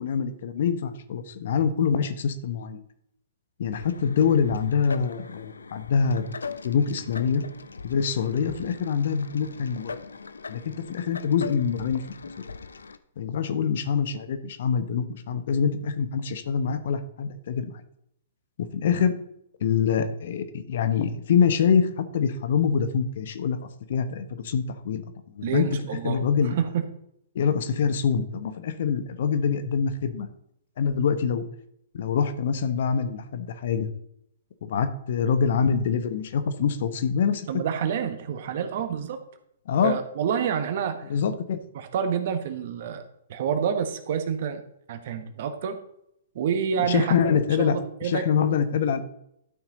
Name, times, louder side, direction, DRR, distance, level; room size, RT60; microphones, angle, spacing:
voice 1, 0.0-2.8 3.6-6.3 6.6-7.4 7.8-9.9 10.5-12.0 13.2-17.7 18.6-19.2 19.6-23.6 23.9-25.0 25.3-25.7 26.0-26.6 27.3-30.3 30.8-31.4 31.9-33.9 34.6-37.5 39.7-40.0 41.1-41.6 46.9-47.8 48.0-49.0, left 6 dB, 60° left, 11 dB, 1.1 m, -25 dB
sound 1, 3.7-13.0, left 5 dB, 80° left, 0.6 m, -41 dB
voice 2, 25.4-26.9 37.5-39.2 39.8-41.1 41.7-43.0 43.3-44.6 44.9-45.8 46.3-47.7 48.0-48.2, right 7 dB, 55° right, 9 dB, 1.3 m, -28 dB
12.0 x 6.0 x 4.0 m, 0.75 s
figure-of-eight pair, 120°, 0 cm